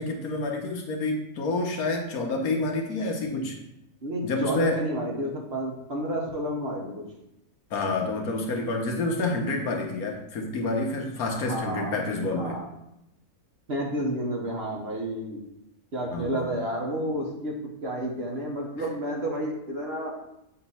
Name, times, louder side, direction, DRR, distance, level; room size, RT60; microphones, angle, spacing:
voice 1, 0.0-3.6 4.2-4.8 7.7-12.6 16.1-16.5, left 2 dB, 70° left, 2 dB, 1.5 m, -28 dB
voice 2, 4.0-7.0 11.4-12.0 12.3-12.6 13.7-15.4 15.9-20.2, equal, 45° right, -1 dB, 1.3 m, -30 dB
7.1 x 2.9 x 5.6 m, 0.81 s
omnidirectional pair, 1.6 m